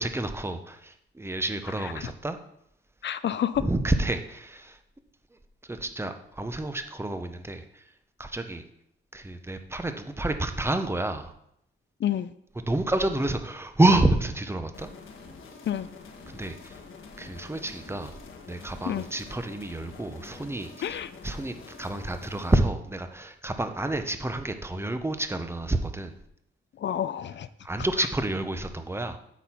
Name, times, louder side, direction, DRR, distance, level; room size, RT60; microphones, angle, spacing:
voice 1, 0.0-2.4 3.6-4.8 5.7-7.8 8.2-8.6 9.1-11.3 12.7-14.9 16.3-16.8 17.2-18.1 18.5-21.0 21.2-26.1 27.6-29.2, right 2 dB, 10° right, 8 dB, 0.8 m, -29 dB
voice 2, 3.0-3.6 12.0-12.3 15.7-15.9 18.9-19.1 20.8-21.1 26.8-27.5, left 10 dB, 60° left, 14 dB, 0.5 m, -29 dB
sound 1, 14.7-22.6, left 4 dB, 80° left, 1.3 m, -46 dB
8.3 x 4.4 x 5.8 m, 0.75 s
cardioid pair, 90°, 21 cm